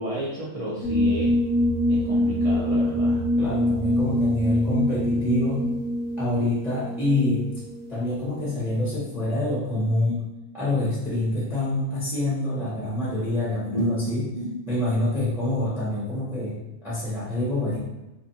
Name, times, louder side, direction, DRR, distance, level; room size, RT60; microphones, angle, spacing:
voice 1, 0.0-1.3 1.9-3.2 13.7-14.5, right 1 dB, 70° right, -8 dB, 0.3 m, -31 dB
sound 1, 0.8-8.3, left 1 dB, 80° left, 0.9 m, -25 dB
voice 2, 3.4-5.7 6.2-7.4 7.9-10.2 10.5-14.2 14.7-17.8, left 1 dB, ahead, -7 dB, 0.6 m, -26 dB
2.5 x 2.5 x 2.7 m, 0.99 s
omnidirectional pair, 1.3 m